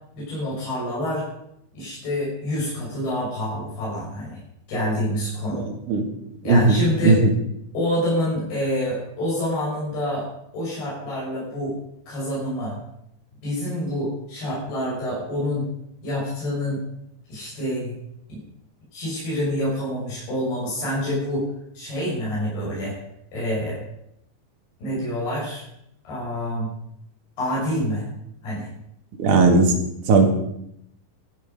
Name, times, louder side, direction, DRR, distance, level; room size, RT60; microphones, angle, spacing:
voice 1, 0.1-1.2 1.7-4.4 4.7-5.7 6.4-7.2 7.7-10.3 10.5-11.8 12.1-12.8 13.4-15.6 16.0-16.8 17.3-18.0 18.3-18.4 18.9-21.5 21.7-23.0 23.3-23.8 24.8-25.6 26.0-26.7 27.4-28.1 28.4-28.7, equal, 80° left, -6 dB, 8.5 m, -27 dB
voice 2, 5.5-6.1 6.5-6.8 7.0-7.3 29.2-29.8 30.1-30.3, right 3 dB, 60° right, 3 dB, 3.2 m, -17 dB
14.5 x 12.5 x 5.3 m, 0.77 s
omnidirectional pair, 4.4 m